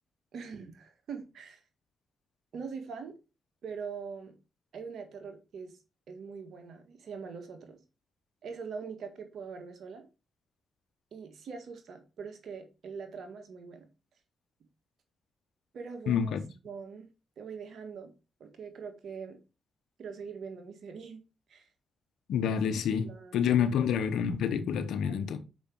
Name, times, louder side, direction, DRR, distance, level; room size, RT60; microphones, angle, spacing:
voice 1, 0.3-1.6 2.5-3.1 3.6-4.4 4.7-5.8 6.1-7.8 8.4-10.1 11.1-13.9 15.7-16.4 16.6-17.1 17.4-18.1 18.4-19.4 20.0-21.2 21.5-21.7 22.5-22.6 23.0-23.9 25.0-25.3, right 5 dB, 70° right, 1.7 m, -43 dB
voice 2, 16.1-16.4 22.3-25.4, left 8 dB, 80° left, 1.0 m, -28 dB
6.1 x 5.2 x 4.5 m
supercardioid pair, 50°, 0 cm